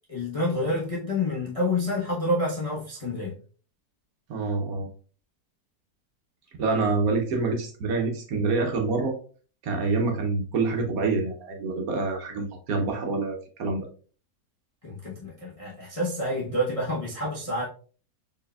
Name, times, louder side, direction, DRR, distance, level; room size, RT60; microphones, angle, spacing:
voice 1, 0.1-3.4 14.8-17.6, left 1 dB, 30° left, 0.7 m, -28 dB
voice 2, 4.3-4.9 6.6-9.2 9.6-13.9, right 3 dB, 65° right, 1.1 m, -26 dB
4.4 x 3.3 x 2.3 m
omnidirectional pair, 1.8 m